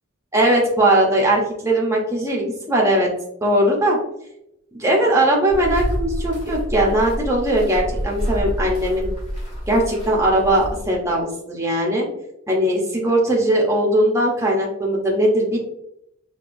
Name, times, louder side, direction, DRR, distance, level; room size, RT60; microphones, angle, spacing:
voice 1, 0.3-3.1 3.4-4.0 4.7-9.1 9.7-12.1 12.5-15.6, right 1 dB, 15° right, -2 dB, 0.7 m, -19 dB
sound 1, 5.5-11.1, equal, 30° left, 1.3 m, -28 dB
4.8 x 2.3 x 2.5 m, 0.80 s
head